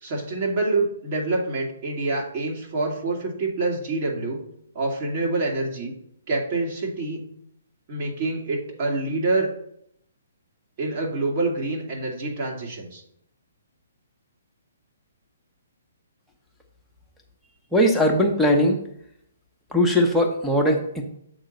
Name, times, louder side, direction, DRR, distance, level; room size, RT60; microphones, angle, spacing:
voice 1, 0.0-4.4 4.7-5.9 6.3-7.2 7.9-9.5 10.8-13.0, right 3 dB, 45° right, -1 dB, 2.1 m, -26 dB
voice 2, 17.7-18.8 19.7-21.0, equal, 5° left, -1 dB, 1.0 m, -20 dB
7.6 x 3.9 x 5.2 m, 0.71 s
hypercardioid pair, 135°, 0 cm